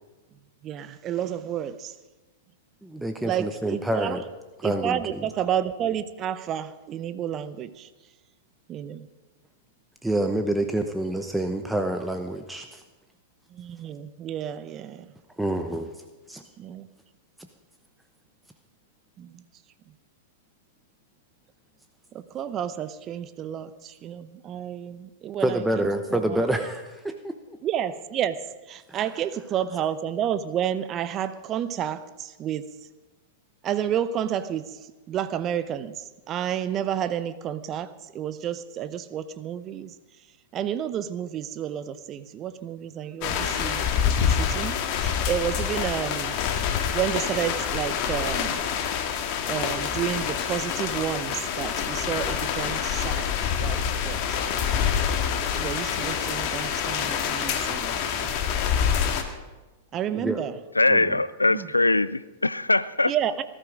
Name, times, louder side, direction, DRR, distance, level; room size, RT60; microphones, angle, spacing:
voice 1, 0.6-1.9 3.2-4.2 4.6-7.9 8.7-9.1 13.5-15.1 16.6-16.9 19.2-19.4 22.1-26.4 27.6-32.6 33.6-34.8 35.1-39.9 40.5-46.4 46.9-48.6 49.5-54.2 55.5-58.5 59.9-60.5 61.5-61.7 63.0-63.4, right 10 dB, 30° right, 13 dB, 0.8 m, -31 dB
voice 2, 2.8-4.2 4.6-5.2 10.0-12.8 15.4-15.9 16.3-16.4 25.4-27.6 28.9-29.0 60.1-60.4 60.9-61.2, right 1 dB, 5° right, 6 dB, 1.0 m, -27 dB
sound 1, 43.2-59.2, left 8 dB, 40° left, 1.9 m, -26 dB
voice 3, 60.8-63.1, left 2 dB, 90° left, 18 dB, 0.5 m, -22 dB
19.0 x 13.0 x 5.1 m, 1.2 s
figure-of-eight pair, 100°, 0 cm